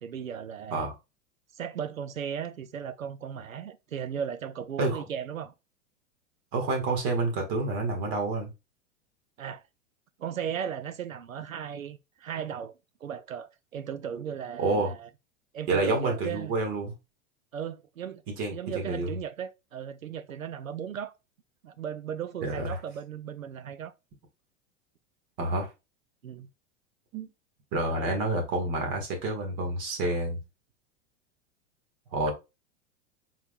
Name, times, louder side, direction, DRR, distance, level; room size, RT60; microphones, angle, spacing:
voice 1, 0.0-0.9 1.5-5.5 9.4-9.6 10.2-12.7 13.0-15.1 15.5-16.5 17.5-18.2 18.5-21.1 21.6-23.9 26.2-26.5 27.9-28.2, right 8 dB, 90° right, 0.6 m, -36 dB
voice 2, 6.5-8.5 14.1-14.2 14.6-14.9 15.7-16.9 18.4-18.5 18.9-19.1 22.4-22.8 25.4-25.7 27.1-27.3 27.7-30.4 32.1-32.3, right 2 dB, 45° right, 1.7 m, -28 dB
4.4 x 3.9 x 2.3 m
figure-of-eight pair, 95°, 40 cm